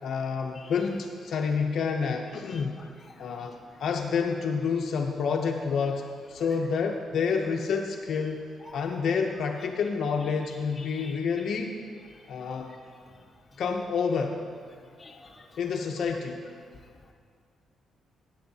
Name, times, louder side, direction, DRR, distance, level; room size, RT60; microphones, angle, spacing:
voice 1, 0.0-2.8 3.2-11.8 12.3-12.7 13.6-14.4 15.6-16.4, left 5 dB, 55° left, 3 dB, 0.5 m, -29 dB
voice 2, 2.5-3.5 8.6-8.8 10.8-11.1 15.0-15.5, left 3 dB, 20° left, 0 dB, 0.9 m, -49 dB
14.0 x 9.0 x 2.7 m, 2.1 s
cardioid pair, 160°, 0 cm